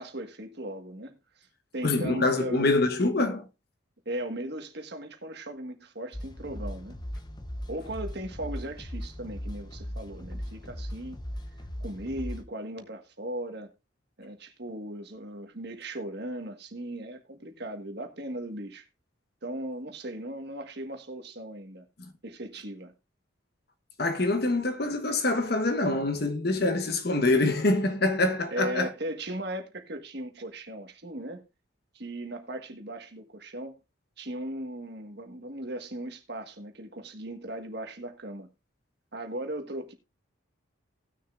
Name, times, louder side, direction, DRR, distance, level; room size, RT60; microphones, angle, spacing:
voice 1, 0.0-1.5 1.7-2.7 4.0-7.0 7.7-11.2 11.8-13.7 14.2-18.9 19.4-21.8 22.2-22.9 28.5-31.4 31.9-33.8 34.2-38.5 39.1-39.9, right 1 dB, 55° right, 1.5 m, -37 dB
voice 2, 1.8-3.4 24.0-28.9, left 2 dB, 50° left, 1.1 m, -25 dB
sound 1, 6.1-12.4, equal, 20° left, 0.8 m, -38 dB
18.5 x 6.6 x 2.5 m
head